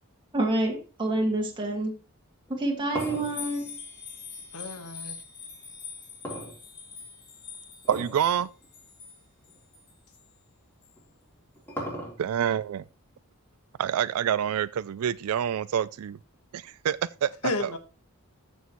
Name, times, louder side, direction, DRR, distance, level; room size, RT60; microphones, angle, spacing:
voice 1, 0.3-1.9 2.5-3.8, right 2 dB, 20° right, 2.0 m, -27 dB
sound 1, 2.4-4.9 6.2-7.1 7.8-8.3 8.6-8.7 9.5-9.6 11.0-12.5, equal, 10° left, 3.6 m, -37 dB
sound 2, 3.0-10.3 10.8-10.9, left 6 dB, 50° left, 2.8 m, -44 dB
voice 2, 4.5-5.2 17.4-17.8, left 2 dB, 80° left, 1.4 m, -31 dB
voice 3, 7.9-8.5 12.2-12.8 13.8-16.2 16.5-17.3 17.6-17.8, right 9 dB, 75° right, 0.3 m, -27 dB
14.0 x 6.3 x 3.1 m
head